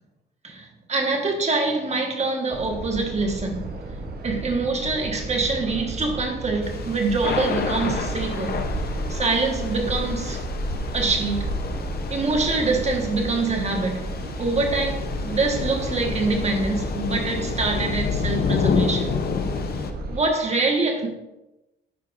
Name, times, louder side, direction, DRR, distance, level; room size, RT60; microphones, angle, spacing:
voice 1, 0.4-3.8 4.2-8.6 9.1-10.5 10.9-11.5 12.1-14.1 14.4-19.2 20.1-21.1, right 3 dB, 35° right, 2 dB, 1.5 m, -25 dB
sound 1, 2.5-20.3, right 1 dB, 50° right, 1.0 m, -32 dB
Thunder / Rain, 6.6-19.9, left 5 dB, 50° left, 0.8 m, -29 dB
11.0 x 4.6 x 2.6 m, 0.98 s
cardioid pair, 90°, 20 cm